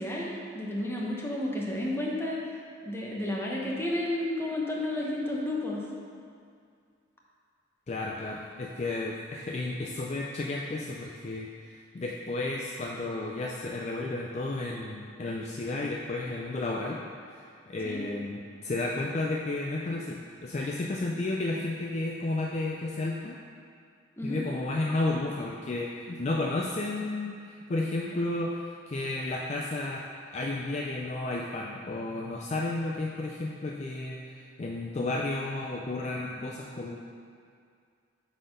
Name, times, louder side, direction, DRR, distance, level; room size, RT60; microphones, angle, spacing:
voice 1, 0.0-2.4 2.8-5.8 17.8-18.0 24.2-24.4, left 1 dB, 15° left, -3 dB, 0.9 m, -31 dB
voice 2, 7.9-17.0 17.3-23.4 24.2-30.0 30.3-37.0, left 2 dB, 35° left, -1 dB, 0.4 m, -32 dB
7.6 x 4.2 x 5.3 m, 2.3 s
head